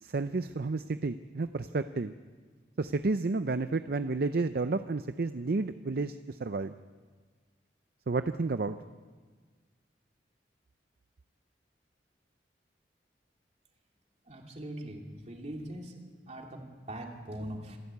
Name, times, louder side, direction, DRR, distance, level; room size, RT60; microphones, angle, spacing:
voice 1, 0.0-2.2 2.8-6.8 8.1-8.8, right 3 dB, 60° right, 11 dB, 0.5 m, -31 dB
voice 2, 14.3-15.9 16.3-17.8, right 1 dB, 40° right, 1 dB, 3.0 m, -41 dB
27.0 x 12.5 x 8.4 m, 1.5 s
head